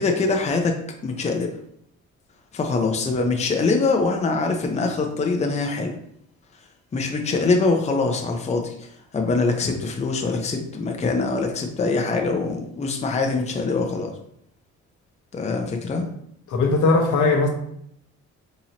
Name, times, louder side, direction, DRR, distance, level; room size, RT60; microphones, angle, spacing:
voice 1, 0.0-1.5 2.5-6.0 6.9-8.9 9.1-14.1 15.3-16.1, left 3 dB, 25° left, 3 dB, 0.5 m, -23 dB
voice 2, 16.5-17.5, left 3 dB, 75° left, 2 dB, 0.9 m, -19 dB
4.2 x 2.8 x 2.8 m, 0.72 s
cardioid pair, 90°, 30 cm